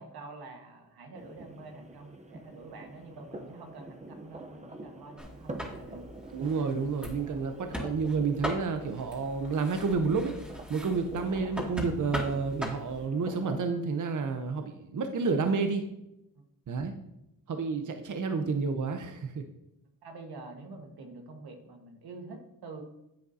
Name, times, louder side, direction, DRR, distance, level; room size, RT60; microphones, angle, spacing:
voice 1, 0.0-6.1 16.3-16.4 20.0-22.8, right 3 dB, 85° right, 3 dB, 1.5 m, -47 dB
sound 1, 1.1-13.7, right 2 dB, 20° right, 0.8 m, -47 dB
sound 2, 5.2-13.1, equal, 5° right, 2.1 m, -40 dB
voice 2, 6.3-10.3 10.7-15.8 16.7-16.9 17.5-19.4, right 4 dB, 55° right, 6 dB, 0.9 m, -30 dB
10.5 x 7.7 x 2.8 m, 0.86 s
cardioid pair, 90°, 37 cm